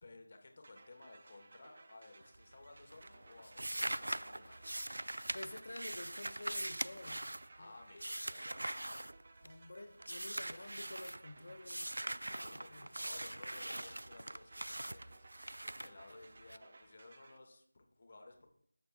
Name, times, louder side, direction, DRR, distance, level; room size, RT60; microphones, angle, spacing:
voice 1, 0.0-4.8 7.5-9.1 12.2-15.3 15.6-18.5, left 2 dB, 45° left, 1.2 m, -57 dB
sound 1, 0.6-17.4, right 3 dB, 45° right, 0.6 m, -61 dB
sound 2, 2.2-2.6 2.9-9.7 10.0-11.2 11.6-16.6, right 1 dB, 80° right, 0.3 m, -42 dB
voice 2, 5.3-7.3 7.6-7.7 9.4-13.0, left 2 dB, 65° left, 1.0 m, -50 dB
14.0 x 6.6 x 2.3 m
figure-of-eight pair, 170°, 0 cm